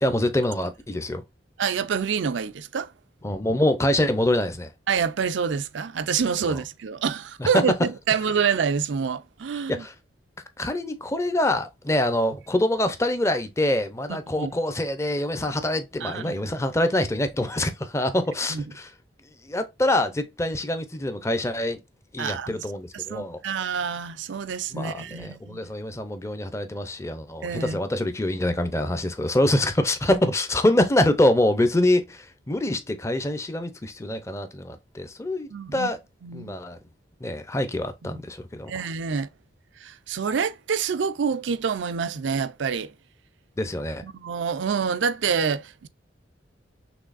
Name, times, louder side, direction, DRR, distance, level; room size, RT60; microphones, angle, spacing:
voice 1, 0.0-1.2 3.2-4.7 6.5-6.6 7.4-7.6 9.7-9.9 10.6-18.9 19.4-21.8 22.1-23.4 24.7-36.0 36.3-36.8 37.2-38.7 43.6-44.0, left 1 dB, 15° left, 0.6 m, -25 dB
voice 2, 1.6-2.9 4.9-9.9 14.1-14.5 16.0-16.4 18.5-18.6 22.2-22.6 22.9-25.7 27.4-27.8 35.5-35.9 36.2-36.5 38.1-38.2 38.7-39.3 39.8-42.9 44.0-45.9, right 6 dB, 90° right, 0.5 m, -27 dB
6.0 x 3.2 x 2.4 m
head